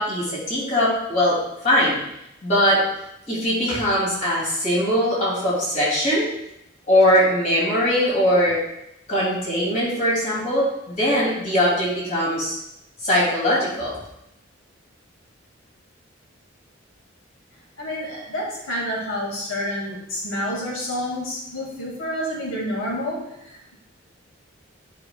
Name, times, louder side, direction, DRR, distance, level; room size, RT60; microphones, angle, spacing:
voice 1, 0.0-1.4 1.6-2.0 2.4-2.8 3.3-6.3 6.9-8.6 9.1-12.6 13.0-14.0, equal, 35° left, -6 dB, 2.5 m, -21 dB
voice 2, 17.8-23.2 23.5-23.7, equal, 75° left, -3 dB, 2.1 m, -29 dB
9.2 x 5.2 x 2.3 m, 0.83 s
head